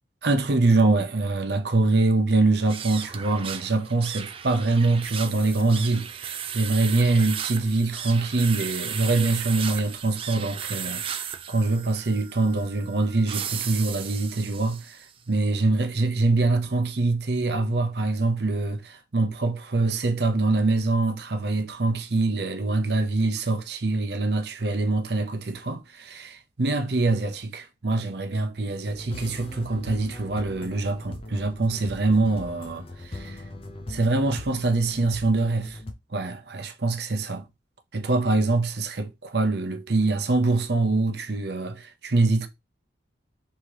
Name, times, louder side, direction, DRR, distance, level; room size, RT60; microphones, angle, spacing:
voice 1, 0.2-11.2 11.5-15.0 15.3-33.4 33.9-35.8 36.1-37.4 37.9-42.5, right 2 dB, 60° right, 0.7 m, -24 dB
sound 1, 2.6-15.1, right 8 dB, 30° right, 0.3 m, -35 dB
sound 2, 28.8-35.9, left 1 dB, 30° left, 0.6 m, -39 dB
3.6 x 2.9 x 4.8 m
head